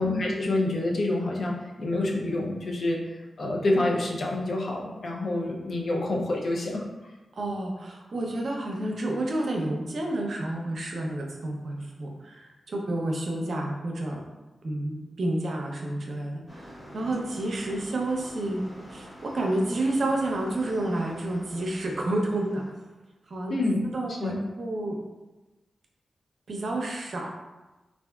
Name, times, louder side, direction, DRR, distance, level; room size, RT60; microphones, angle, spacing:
voice 1, 0.0-6.8 23.5-23.8 24.1-24.4, left 2 dB, 65° left, -2 dB, 0.5 m, -27 dB
voice 2, 7.4-14.2 14.6-18.6 18.9-22.6 23.3-23.5 23.9-24.9 26.5-27.3, right 1 dB, 65° right, 0 dB, 0.6 m, -30 dB
sound 1, 16.5-22.7, equal, 30° left, 0.9 m, -46 dB
3.4 x 2.5 x 2.2 m, 1.1 s
cardioid pair, 45°, 0 cm